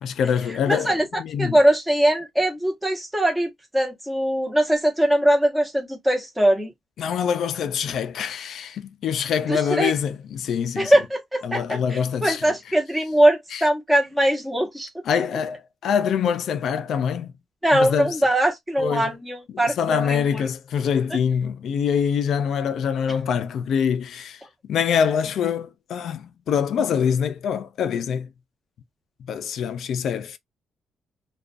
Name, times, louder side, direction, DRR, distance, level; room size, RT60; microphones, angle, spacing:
voice 1, 0.0-1.6 7.0-10.9 11.4-12.5 13.5-13.6 15.0-17.3 17.7-18.1 18.8-19.1 19.5-24.4 24.7-28.3 29.3-30.4, left 7 dB, 70° left, 0.4 m, -25 dB
voice 2, 0.7-1.1 1.4-6.7 9.5-9.9 10.8-14.9 17.6-20.5, right 1 dB, 5° right, 0.9 m, -21 dB
2.4 x 2.3 x 2.4 m
cardioid pair, 130°, 0 cm